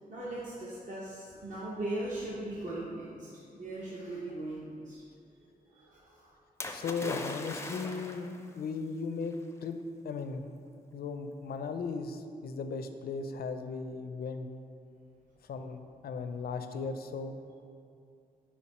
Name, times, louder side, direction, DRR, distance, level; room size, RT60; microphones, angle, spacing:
voice 1, 0.1-5.0 5.4-6.3, right 1 dB, 55° right, -7 dB, 1.0 m, -39 dB
Splash splatter, 6.6-8.4 9.3-9.4, left 2 dB, 15° left, 0.4 m, -39 dB
voice 2, 6.7-9.3 9.6-9.8 10.0-10.5 10.9-14.5 15.4-17.4, left 4 dB, 80° left, 7 dB, 0.4 m, -37 dB
5.7 x 4.6 x 4.3 m, 2.4 s
wide cardioid pair, 120°, 16 cm